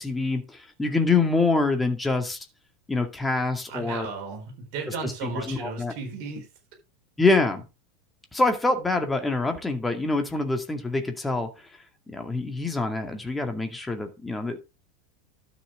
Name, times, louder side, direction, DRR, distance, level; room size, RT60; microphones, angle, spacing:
voice 1, 0.0-2.4 2.9-4.1 4.9-5.9 7.2-7.6 8.3-11.5 12.1-14.6, left 3 dB, 10° left, 2.1 m, -25 dB
voice 2, 3.7-6.4, right 4 dB, 45° right, 4.4 m, -34 dB
12.5 x 7.0 x 3.7 m
figure-of-eight pair, 80°, 0 cm